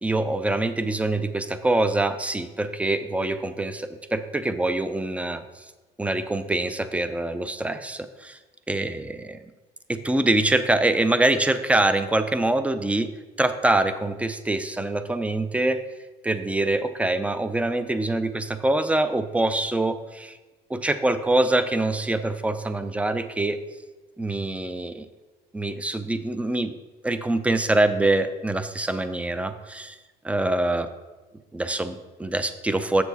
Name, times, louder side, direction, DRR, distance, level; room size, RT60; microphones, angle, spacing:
voice 1, 0.0-5.4 6.0-8.4 8.7-9.4 9.9-13.1 13.4-15.8 16.2-20.4 20.7-23.6 24.2-25.1 25.5-26.8 27.0-30.0 30.2-30.9 31.5-33.0, right 2 dB, 10° right, 11 dB, 0.5 m, -24 dB
7.2 x 6.9 x 4.1 m, 1.2 s
cardioid pair, 110°, 17 cm